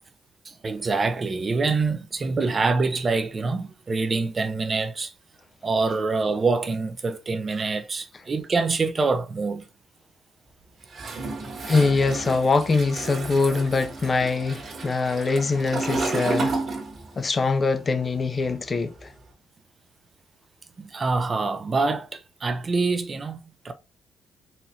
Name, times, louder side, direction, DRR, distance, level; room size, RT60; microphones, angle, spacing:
voice 1, 0.5-5.1 5.6-9.6 20.8-23.7, right 4 dB, 35° right, 0.5 m, -25 dB
Toilet flush, 10.9-17.4 17.6-19.2, right 3 dB, 50° right, 1.3 m, -32 dB
voice 2, 11.6-16.6 17.2-19.1, left 4 dB, 35° left, 0.4 m, -23 dB
4.1 x 3.0 x 2.6 m
cardioid pair, 90°, 0 cm